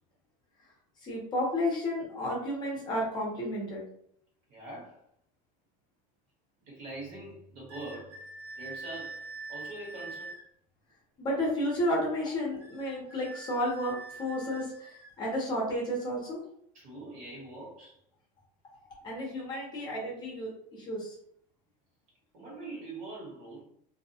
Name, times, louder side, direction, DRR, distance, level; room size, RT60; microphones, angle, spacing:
voice 1, 1.0-3.8 11.2-14.9 15.2-16.4 19.0-21.1, left 1 dB, 25° left, -2 dB, 0.7 m, -32 dB
voice 2, 4.5-5.0 6.6-8.2 8.5-10.3 16.7-18.0 22.3-23.6, right 2 dB, 50° right, -4 dB, 1.3 m, -43 dB
sound 1, 7.7-10.5 12.6-15.2, right 3 dB, 35° right, 0.9 m, -44 dB
2.6 x 2.2 x 2.7 m, 0.68 s
cardioid pair, 170°, 17 cm